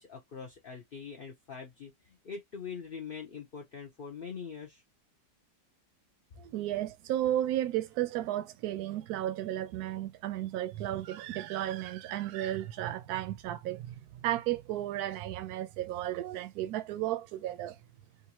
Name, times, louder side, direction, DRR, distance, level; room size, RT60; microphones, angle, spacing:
voice 1, 0.0-4.8, left 6 dB, 70° left, 0.5 m, -43 dB
voice 2, 6.4-17.8, right 13 dB, 70° right, 1.0 m, -34 dB
3.8 x 2.5 x 2.9 m
omnidirectional pair, 1.9 m